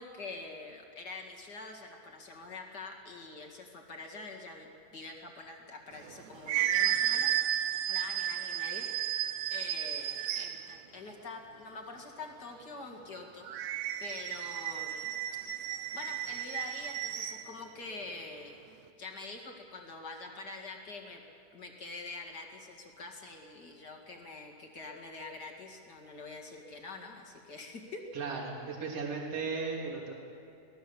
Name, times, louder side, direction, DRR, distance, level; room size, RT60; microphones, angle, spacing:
voice 1, 0.0-8.9 9.5-13.5 14.0-15.2 15.9-18.6 19.0-21.2 21.5-28.1, left 3 dB, 35° left, 1 dB, 2.3 m, -45 dB
sound 1, 6.0-10.7 13.5-17.5, right 11 dB, 75° right, 2.0 m, -33 dB
voice 2, 28.1-30.1, right 4 dB, 45° right, -1 dB, 3.8 m, -36 dB
24.0 x 18.5 x 7.1 m, 2.6 s
omnidirectional pair, 3.8 m